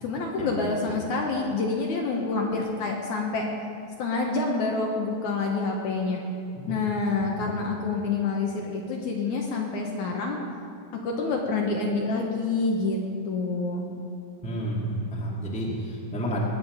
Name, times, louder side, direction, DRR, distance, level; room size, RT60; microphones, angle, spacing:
voice 1, 0.0-3.5 4.0-6.2 6.7-10.4 10.9-13.0 13.3-13.9, left 3 dB, 65° left, 0 dB, 2.3 m, -27 dB
voice 2, 14.4-16.4, right 1 dB, 5° left, -4 dB, 1.6 m, -30 dB
20.5 x 9.2 x 5.2 m, 2.5 s
omnidirectional pair, 4.1 m